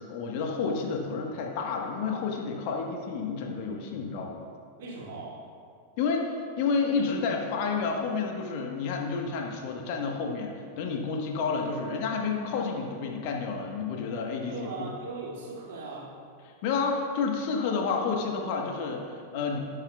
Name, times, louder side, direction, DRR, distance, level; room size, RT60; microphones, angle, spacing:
voice 1, 0.1-4.5 6.0-14.5 14.8-14.9 16.6-19.6, left 5 dB, 45° left, 1 dB, 1.3 m, -30 dB
voice 2, 4.8-5.4 14.4-16.2, right 3 dB, 55° right, -5 dB, 2.5 m, -39 dB
17.5 x 7.4 x 2.4 m, 2.3 s
figure-of-eight pair, 90°, 0 cm